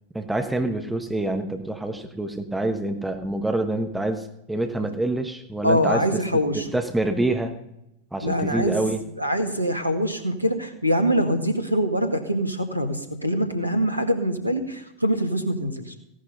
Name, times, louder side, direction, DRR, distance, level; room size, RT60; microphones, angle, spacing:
voice 1, 0.1-6.0 6.7-7.5 8.1-9.0, right 2 dB, 5° right, 6 dB, 1.3 m, -26 dB
voice 2, 5.6-6.7 8.2-8.8 9.2-15.9, equal, 85° right, 7 dB, 1.9 m, -24 dB
16.5 x 11.5 x 5.5 m, 0.85 s
figure-of-eight pair, 90°, 0 cm